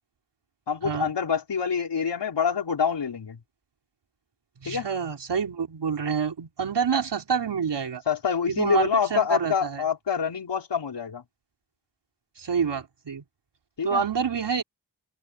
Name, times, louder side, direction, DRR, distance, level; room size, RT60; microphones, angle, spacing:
voice 1, 0.7-3.4 4.6-4.9 8.1-11.2 13.8-14.0, left 7 dB, 75° left, 4.9 m, -26 dB
voice 2, 4.6-8.0 8.5-9.8 12.4-13.2 13.8-14.6, right 6 dB, 75° right, 3.9 m, -27 dB
open air
wide cardioid pair, 90°, 42 cm